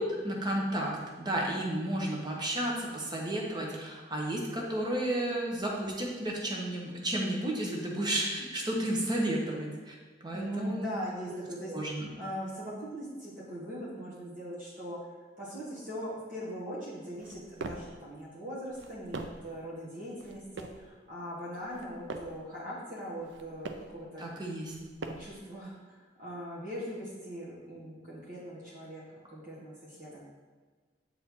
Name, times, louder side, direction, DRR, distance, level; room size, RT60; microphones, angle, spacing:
voice 1, 0.0-9.9 10.2-10.9 11.7-12.1 24.2-24.7, right 1 dB, 25° right, -2 dB, 1.1 m, -32 dB
voice 2, 10.3-15.1 15.4-24.3 25.0-29.0 29.3-30.2, equal, 50° right, -7 dB, 1.5 m, -40 dB
sound 1, 17.2-18.0 18.7-19.5 20.2-20.9 21.6-22.4 23.2-24.0 24.6-25.4, right 3 dB, 85° right, 0.5 m, -43 dB
7.7 x 4.5 x 3.8 m, 1.4 s
head